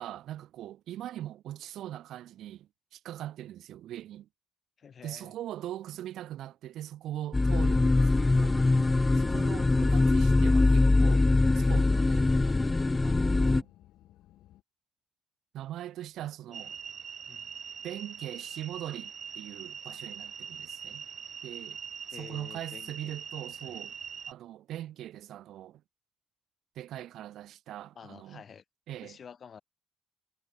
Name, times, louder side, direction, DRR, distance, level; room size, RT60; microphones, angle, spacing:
voice 1, 0.0-4.3 5.0-8.6 9.1-11.3 11.5-12.3 13.0-13.7 15.5-16.8 17.8-21.1 21.4-21.8 22.2-23.9 24.3-25.8 26.8-28.4 28.9-29.2, right 12 dB, 80° right, 2.5 m, -41 dB
voice 2, 4.8-5.3 16.5-16.6 17.3-17.5 22.1-23.2 23.6-23.7 28.0-28.6 29.0-29.6, left 7 dB, 50° left, 2.3 m, -49 dB
sound 1, 7.3-13.6, left 2 dB, 20° left, 0.3 m, -23 dB
sound 2, 7.7-14.6, left 14 dB, 85° left, 3.2 m, -57 dB
sound 3, 16.5-24.3, right 7 dB, 50° right, 2.8 m, -42 dB
cardioid pair, 90°, 0 cm